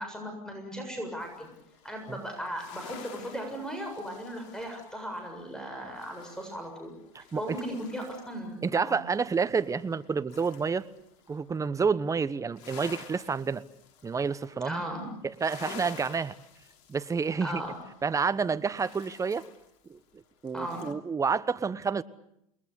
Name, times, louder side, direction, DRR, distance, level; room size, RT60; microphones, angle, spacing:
voice 1, 0.0-1.5 1.8-6.9 7.4-9.0 14.6-15.1 17.4-17.7 20.5-20.9, equal, 5° left, 4 dB, 7.3 m, -37 dB
sound 1, 1.2-8.5 8.8-11.5 11.9-20.9, left 8 dB, 55° left, 3.3 m, -51 dB
voice 2, 7.1-7.6 8.6-10.9 11.3-13.6 14.0-14.8 15.2-16.3 16.9-17.6 18.0-19.4 19.9-20.0 20.4-22.0, right 5 dB, 15° right, 14 dB, 1.2 m, -29 dB
29.0 x 21.0 x 8.5 m, 0.78 s
hypercardioid pair, 95°, 19 cm